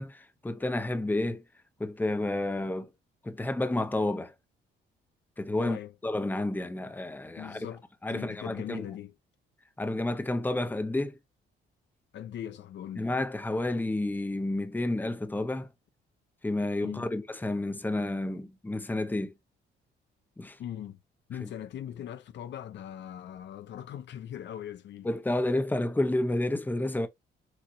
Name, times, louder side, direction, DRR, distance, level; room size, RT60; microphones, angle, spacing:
voice 1, 0.0-1.4 1.8-2.9 3.2-4.3 5.4-5.8 6.0-7.7 8.0-8.8 9.8-11.2 13.0-15.7 16.4-19.3 20.4-20.6 21.4-21.5 25.0-27.1, left 2 dB, 10° left, 0.8 m, -30 dB
voice 2, 5.6-5.9 7.4-9.1 12.1-13.1 16.8-17.1 20.6-21.0 21.3-25.1, left 10 dB, 65° left, 0.6 m, -40 dB
6.1 x 2.8 x 2.6 m
cardioid pair, 90°, 20 cm